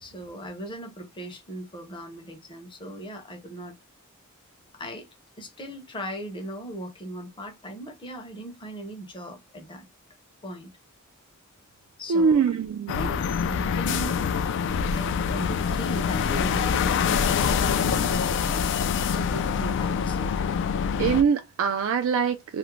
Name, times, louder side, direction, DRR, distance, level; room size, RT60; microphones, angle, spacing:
voice 1, 0.0-3.8 4.7-5.1 5.4-9.9 10.4-10.7 12.0-12.5 12.9-14.2 14.9-18.4 19.0-20.3, right 1 dB, 25° left, 0.6 m, -38 dB
voice 2, 12.1-13.0 21.0-22.6, right 6 dB, 65° right, 0.3 m, -23 dB
sound 1, 12.9-21.2, left 6 dB, 55° left, 0.3 m, -25 dB
2.4 x 2.1 x 2.9 m
head